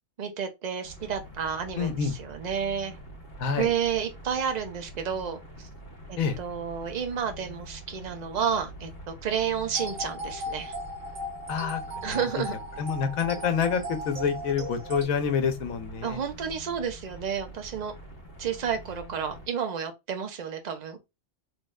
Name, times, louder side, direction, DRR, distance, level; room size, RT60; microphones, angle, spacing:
voice 1, 0.2-3.0 3.5-5.7 6.1-10.7 12.0-12.5 16.0-17.9 18.4-21.0, right 7 dB, 45° right, 0.6 m, -31 dB
sound 1, 0.8-19.5, right 1 dB, 35° left, 1.8 m, -45 dB
voice 2, 1.8-2.1 3.4-3.7 6.2-6.4 11.5-12.4 12.8-16.2, left 6 dB, 85° left, 1.2 m, -28 dB
sound 2, 9.7-15.0, left 1 dB, 70° right, 1.2 m, -37 dB
3.4 x 3.1 x 2.3 m
omnidirectional pair, 1.4 m